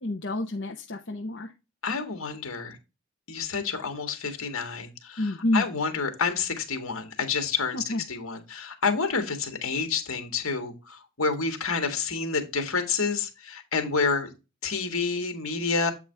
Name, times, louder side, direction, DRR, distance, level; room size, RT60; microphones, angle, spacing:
voice 1, 0.0-1.5 5.2-5.6 7.7-8.0, left 1 dB, 50° left, 1 dB, 0.9 m, -28 dB
voice 2, 1.8-2.8 3.3-14.3 14.6-15.9, left 4 dB, 70° left, 6 dB, 1.9 m, -29 dB
8.1 x 4.8 x 3.4 m, 0.26 s
head